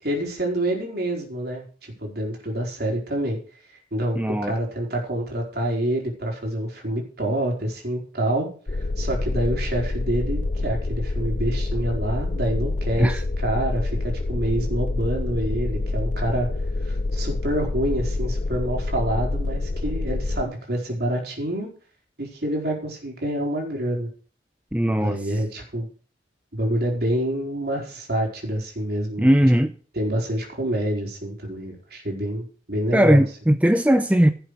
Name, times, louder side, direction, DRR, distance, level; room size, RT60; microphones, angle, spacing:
voice 1, 0.0-3.4 3.9-16.5 16.8-21.7 22.2-24.1 24.9-25.9 26.5-29.3 30.0-33.2, right 1 dB, 55° right, 4.5 m, -27 dB
voice 2, 4.1-4.5 13.0-13.2 24.7-25.2 29.2-29.7 32.9-34.3, equal, 10° right, 0.6 m, -18 dB
sound 1, 8.7-20.4, left 2 dB, 40° left, 0.6 m, -27 dB
16.5 x 7.8 x 5.0 m
head